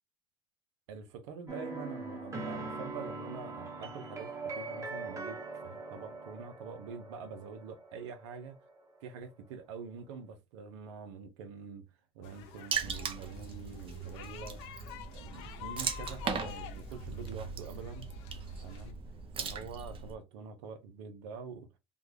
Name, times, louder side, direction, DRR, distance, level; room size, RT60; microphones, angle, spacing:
voice 1, 0.9-8.6 9.0-11.9 12.1-14.6 15.1-18.1 18.6-18.9 19.3-21.7, right 5 dB, 85° right, 0.6 m, -45 dB
sound 1, 1.5-9.0, right 3 dB, 20° right, 1.1 m, -42 dB
sound 2, 12.2-18.9, left 9 dB, 85° left, 0.6 m, -49 dB
Water / Splash splatter, 12.7-20.1, right 5 dB, 40° right, 0.7 m, -39 dB
3.4 x 2.3 x 3.2 m
supercardioid pair, 95°, 14 cm